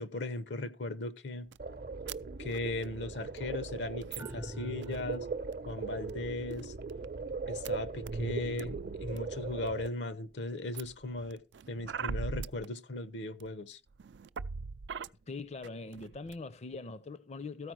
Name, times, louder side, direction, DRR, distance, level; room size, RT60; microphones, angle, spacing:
voice 1, 0.0-1.5 2.4-5.3 5.7-6.7 7.5-11.4 11.7-13.8, left 2 dB, 80° left, 1.0 m, -37 dB
sound 1, 1.5-1.6 2.0-2.1 2.4-2.9 3.4-3.5 4.0-5.2 5.5-5.7 6.1-6.2 6.5-7.0 7.6-7.7 8.0-9.2 9.7-10.1 10.7-12.7 13.4-13.5 13.9-15.1 15.6-15.7 15.9-16.3, right 5 dB, 80° right, 0.4 m, -42 dB
sound 2, 1.6-9.9, right 4 dB, 55° right, 0.7 m, -39 dB
sound 3, 4.2-5.7, equal, 15° right, 0.4 m, -45 dB
voice 2, 15.3-17.7, left 3 dB, 40° left, 0.6 m, -42 dB
14.0 x 4.7 x 6.1 m
head